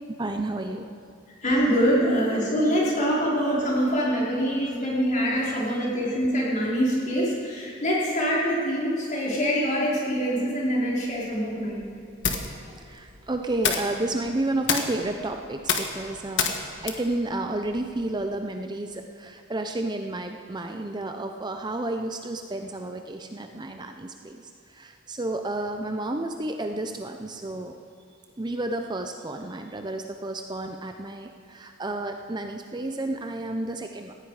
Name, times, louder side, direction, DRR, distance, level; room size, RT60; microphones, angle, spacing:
voice 1, 0.2-0.9 4.6-4.7 5.4-5.9 12.7-16.4 16.8-24.4 24.7-27.8 28.4-34.1, right 2 dB, 20° right, 5 dB, 0.6 m, -31 dB
voice 2, 1.4-11.9, equal, 40° left, -5 dB, 4.5 m, -24 dB
sound 1, 11.1-18.3, left 6 dB, 60° left, 1.5 m, -31 dB
18.5 x 15.0 x 4.9 m, 2.7 s
head